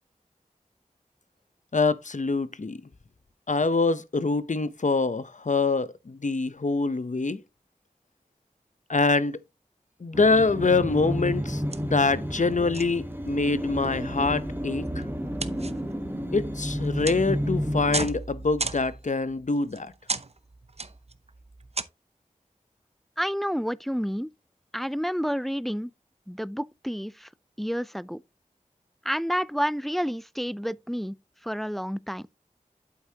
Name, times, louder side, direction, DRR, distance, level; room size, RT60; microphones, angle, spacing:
voice 1, 1.7-2.8 3.5-7.4 8.9-9.4 10.0-15.0 16.3-19.9, left 3 dB, 60° left, 0.7 m, -25 dB
sound 1, 10.1-18.1, equal, 15° right, 1.6 m, -31 dB
sound 2, 10.9-11.0 11.3-11.4 11.7-12.4 12.7-13.3 13.8-21.8, right 3 dB, 50° right, 0.8 m, -36 dB
voice 2, 23.2-24.3 24.7-25.9 26.3-27.3 27.6-28.2 29.1-31.2 31.4-32.2, equal, ahead, 0.4 m, -29 dB
8.5 x 7.9 x 2.8 m
wide cardioid pair, 40°, 14 cm